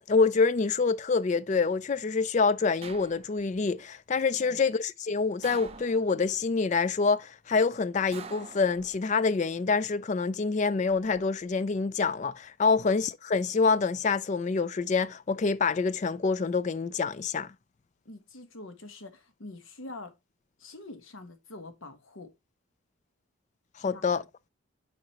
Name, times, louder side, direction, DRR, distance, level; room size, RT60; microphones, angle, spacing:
voice 1, 0.0-17.5 23.8-24.2, left 4 dB, 35° left, 0.3 m, -26 dB
sound 1, 2.8-3.6 5.4-6.4 8.1-9.3 10.7-11.2, right 5 dB, 30° right, 0.6 m, -46 dB
voice 2, 18.0-20.1 20.6-22.3 23.8-24.0, left 2 dB, 75° left, 1.2 m, -45 dB
7.7 x 4.9 x 2.9 m
head